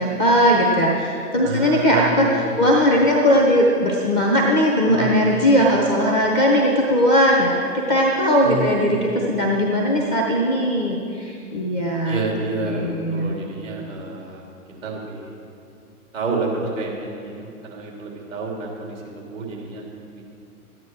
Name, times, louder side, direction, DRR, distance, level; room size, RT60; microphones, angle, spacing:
voice 1, 0.0-12.2 12.7-13.3, equal, 5° right, -1 dB, 0.4 m, -19 dB
voice 2, 1.4-2.7 4.9-5.1 8.4-9.1 12.1-14.4 14.8-15.3 16.1-19.8 20.1-20.2, right 3 dB, 60° right, -2 dB, 3.6 m, -29 dB
13.0 x 9.5 x 6.2 m, 2.5 s
figure-of-eight pair, 115°, 44 cm